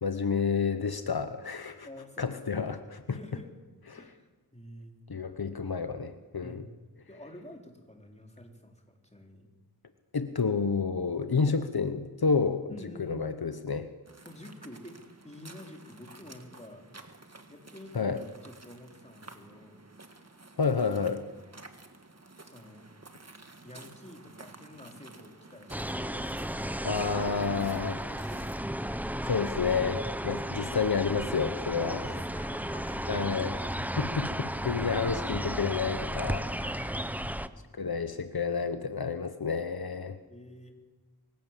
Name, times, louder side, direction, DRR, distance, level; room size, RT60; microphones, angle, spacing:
voice 1, 0.0-1.9 2.2-3.2 3.9-4.0 5.1-6.6 10.1-12.7 13.0-13.9 17.9-18.2 20.6-21.2 26.8-27.9 29.2-32.0 33.1-33.5 34.0-36.5 37.7-40.2, left 5 dB, 70° left, 10 dB, 1.0 m, -30 dB
voice 2, 1.8-2.6 3.1-3.5 3.9-5.0 6.4-6.8 7.1-9.5 12.7-13.6 14.2-16.9 17.5-19.8 22.4-22.9 23.6-26.9 27.4-27.9 28.3-28.6 31.8-33.3 36.6-37.6 40.2-40.7, left 1 dB, 15° left, 2 dB, 3.7 m, -48 dB
sound 1, 14.1-28.6, right 2 dB, 40° right, 1.8 m, -52 dB
sound 2, 25.7-37.5, equal, 5° right, 0.9 m, -34 dB
23.5 x 16.5 x 7.4 m, 1.2 s
wide cardioid pair, 45°, 38 cm